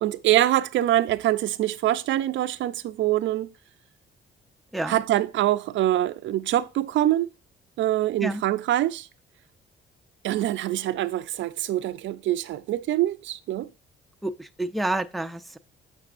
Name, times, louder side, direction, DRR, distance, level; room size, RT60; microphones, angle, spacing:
voice 1, 0.0-3.5 4.9-7.3 7.8-9.1 10.2-13.7, right 13 dB, 70° right, 0.4 m, -24 dB
voice 2, 14.2-15.6, right 2 dB, ahead, 0.4 m, -29 dB
6.7 x 6.0 x 2.4 m
cardioid pair, 90°, 20 cm